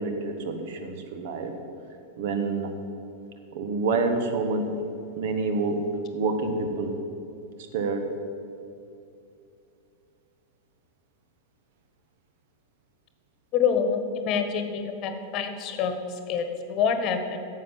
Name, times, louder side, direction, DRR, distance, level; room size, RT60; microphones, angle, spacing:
voice 1, 0.0-1.5 2.2-2.8 3.5-4.7 5.2-5.8 6.1-6.9 7.7-8.0, right 3 dB, 50° right, 7 dB, 1.3 m, -27 dB
voice 2, 13.5-16.0 16.3-17.4, left 6 dB, 35° left, 7 dB, 1.3 m, -26 dB
10.5 x 7.5 x 7.4 m, 2.7 s
figure-of-eight pair, 90°, 0 cm